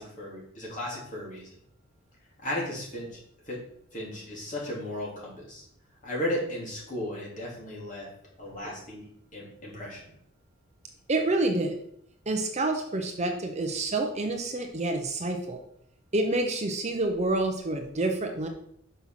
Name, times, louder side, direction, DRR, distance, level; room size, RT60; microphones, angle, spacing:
voice 1, 0.0-1.5 2.4-3.2 3.5-3.6 3.9-5.6 6.0-8.1 8.4-10.0, left 1 dB, 35° left, -4 dB, 3.0 m, -35 dB
voice 2, 11.1-11.8 12.3-15.6 16.1-18.5, right 2 dB, 30° right, 4 dB, 0.8 m, -28 dB
6.1 x 5.6 x 5.8 m, 0.69 s
head